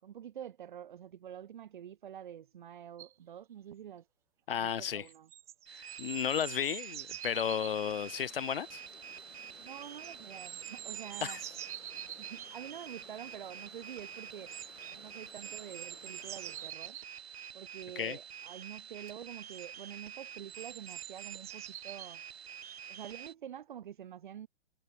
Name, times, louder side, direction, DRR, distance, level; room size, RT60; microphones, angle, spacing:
voice 1, 0.0-4.1 4.6-5.3 9.6-11.4 12.2-14.5 14.9-17.0 17.5-22.2 22.9-24.5, right 9 dB, 40° right, 5.4 m, -47 dB
sound 1, 3.0-3.1 5.1-7.8 10.0-12.5 14.5-15.0 15.3-17.5 19.1-19.2 19.5-19.7 20.5-22.1 22.6-22.8, right 13 dB, 5° right, 1.3 m, -46 dB
voice 2, 4.5-5.1 5.7-8.8 11.2-11.4 18.0-18.2, left 8 dB, 50° left, 1.2 m, -33 dB
sound 2, 5.7-23.3, right 8 dB, 55° right, 1.8 m, -48 dB
sound 3, 7.2-16.7, left 6 dB, 85° left, 7.6 m, -58 dB
hypercardioid pair, 180°, 37 cm